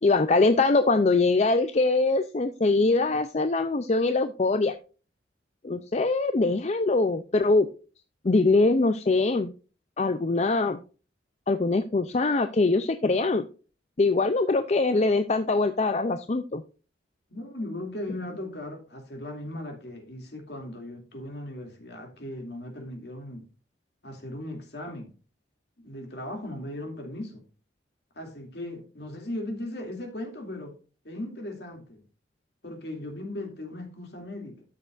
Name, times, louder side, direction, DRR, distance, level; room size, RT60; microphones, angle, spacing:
voice 1, 0.0-4.8 5.6-7.7 8.2-9.5 10.0-10.8 11.5-13.4 14.0-16.6, left 3 dB, 35° left, 0.5 m, -23 dB
voice 2, 17.3-23.5 24.0-25.1 25.8-27.4 28.2-30.8 31.0-32.0 32.6-34.6, left 1 dB, 60° left, 2.6 m, -37 dB
13.0 x 6.6 x 2.5 m
head